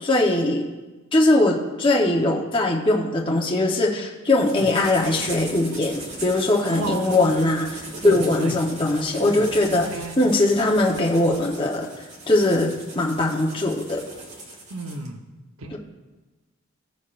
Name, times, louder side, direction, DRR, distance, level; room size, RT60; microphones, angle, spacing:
voice 1, 0.0-0.6 1.1-9.9 10.2-11.9 12.3-14.0 15.7-15.8, left 2 dB, 25° left, -2 dB, 1.0 m, -21 dB
sound 1, 4.3-15.1, right 1 dB, 30° right, 1.5 m, -39 dB
voice 2, 6.7-7.2 8.0-8.5 9.3-9.4 9.9-10.2 14.7-15.2 15.6-15.8, right 2 dB, 75° right, 5 dB, 1.0 m, -31 dB
17.0 x 6.6 x 2.5 m, 1.2 s
head